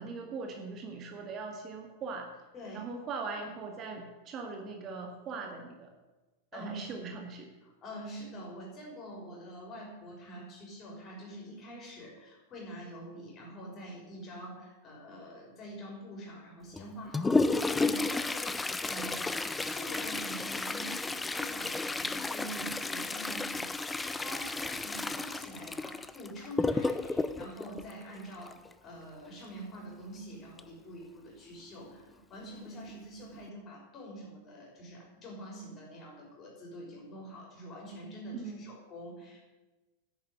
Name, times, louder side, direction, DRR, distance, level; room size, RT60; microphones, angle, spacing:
voice 1, 0.0-2.3 2.7-5.9 6.5-7.5 38.3-38.7, right 4 dB, 30° right, 3 dB, 1.9 m, -40 dB
voice 2, 2.5-2.9 6.5-7.1 7.6-19.3 19.6-39.4, equal, 30° left, -2 dB, 6.0 m, -46 dB
Toilet flush, 16.7-28.7 30.6-30.7 31.0-31.1 31.9-32.0 32.7-32.9 33.3-33.5, left 3 dB, 10° left, 0.6 m, -32 dB
10.5 x 8.8 x 9.6 m, 1.2 s
figure-of-eight pair, 90°, 0 cm